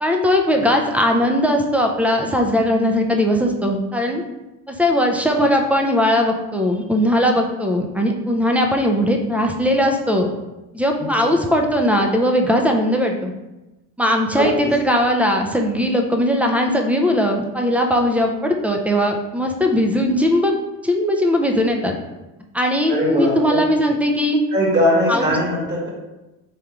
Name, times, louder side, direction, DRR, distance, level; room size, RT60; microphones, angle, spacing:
voice 1, 0.0-4.2 4.7-10.3 10.7-13.3 14.0-20.5 20.8-21.9 22.5-24.4 25.1-25.4, equal, 5° right, 2 dB, 0.3 m, -19 dB
voice 2, 11.0-11.3 14.3-14.7 22.9-23.6 24.5-25.9, equal, 25° right, -4 dB, 1.4 m, -20 dB
3.6 x 3.4 x 2.9 m, 1.0 s
cardioid pair, 100°, 40 cm